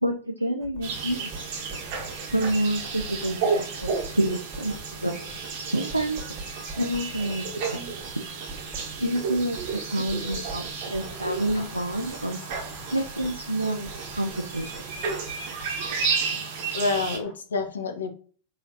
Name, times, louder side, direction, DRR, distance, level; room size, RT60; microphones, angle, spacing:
voice 1, 0.0-1.5 2.3-5.2 5.6-7.8 8.1-8.2 9.0-12.4 12.9-14.7 16.0-16.4, right 1 dB, 85° right, 5 dB, 0.4 m, -29 dB
Writing, 0.6-16.2, right 2 dB, 5° right, 1.1 m, -45 dB
sound 1, 0.8-17.2, right 5 dB, 50° right, 1.0 m, -32 dB
voice 2, 9.9-10.4 11.5-11.6 16.7-18.1, left 3 dB, 70° left, 7 dB, 0.6 m, -29 dB
sound 2, 10.9-17.3, left 2 dB, 35° left, 1.0 m, -49 dB
4.6 x 3.1 x 2.6 m, 0.42 s
figure-of-eight pair, 90°, 0 cm